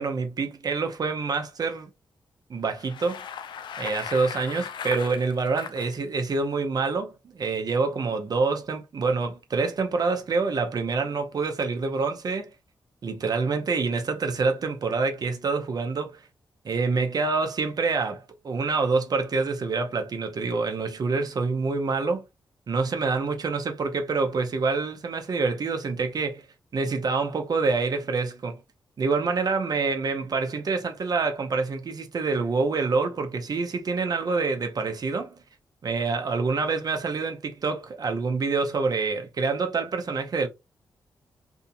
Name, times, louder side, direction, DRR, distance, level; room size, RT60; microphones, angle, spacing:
voice 1, 0.0-1.9 2.5-3.3 3.8-12.5 13.0-16.2 16.6-22.2 22.7-26.4 26.7-28.6 29.0-35.4 35.8-40.5, right 4 dB, 55° right, 0.7 m, -26 dB
Bicycle, 2.7-6.0, left 7 dB, 75° left, 0.4 m, -37 dB
2.7 x 2.6 x 2.4 m
cardioid pair, 70°, 8 cm